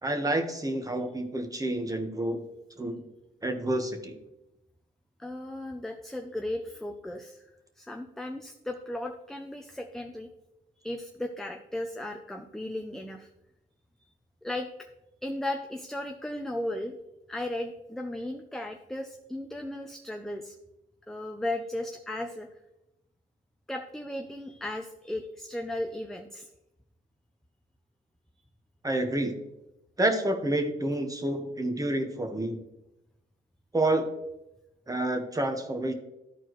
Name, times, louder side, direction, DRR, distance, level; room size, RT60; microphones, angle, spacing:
voice 1, 0.0-2.4 2.8-3.1 3.4-4.1 28.8-29.4 30.0-32.6 33.7-34.1 34.9-35.9, right 1 dB, 15° right, 5 dB, 1.3 m, -29 dB
voice 2, 5.2-7.4 7.8-10.3 10.8-13.3 14.4-14.7 15.2-16.9 17.3-20.5 21.1-22.5 23.7-26.5, left 1 dB, ahead, 4 dB, 0.6 m, -36 dB
13.0 x 4.4 x 3.1 m, 0.91 s
cardioid pair, 75°, 20 cm